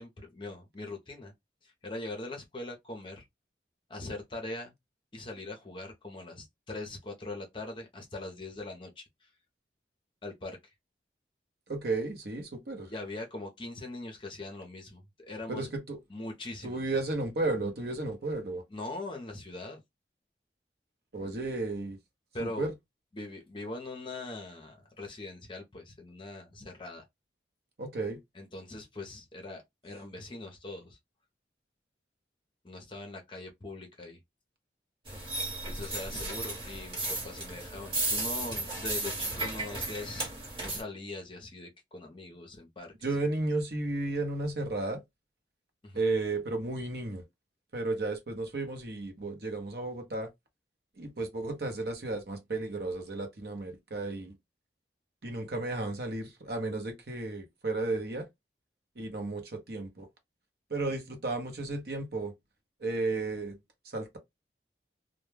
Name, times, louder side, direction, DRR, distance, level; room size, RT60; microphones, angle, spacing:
voice 1, 0.0-1.3 1.6-3.3 3.9-4.7 5.1-9.0 10.2-10.6 12.9-15.7 16.1-16.8 18.7-19.8 22.3-22.7 23.1-27.0 28.3-31.0 32.6-34.2 35.7-40.3 40.6-42.9 45.8-46.0, left 2 dB, 30° left, 0.6 m, -41 dB
voice 2, 11.7-12.9 15.5-16.0 16.6-18.6 21.1-22.0 22.4-22.7 27.8-28.2 43.0-45.0 45.9-47.2 47.7-50.3 51.0-54.3 55.2-58.3 59.0-60.1 60.7-62.3 62.8-63.6 63.9-64.2, right 2 dB, 60° right, 0.7 m, -33 dB
sound 1, 35.1-40.8, right 2 dB, 30° right, 1.1 m, -34 dB
2.2 x 2.1 x 3.2 m
head